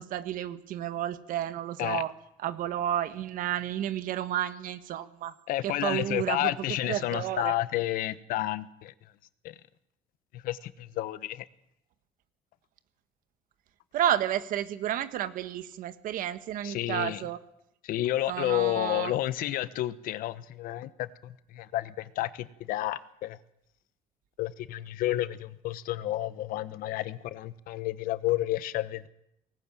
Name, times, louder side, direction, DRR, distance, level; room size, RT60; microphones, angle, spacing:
voice 1, 0.0-2.1 2.4-5.3 5.6-6.5 6.8-7.5 13.9-17.4 18.3-19.1, right 11 dB, 70° right, 12 dB, 1.5 m, -31 dB
voice 2, 5.5-8.9 9.4-9.5 10.3-11.4 16.6-17.2 17.8-23.4 24.4-29.1, left 14 dB, 80° left, 15 dB, 1.1 m, -31 dB
19.0 x 18.0 x 9.0 m, 0.77 s
cardioid pair, 125°, 14 cm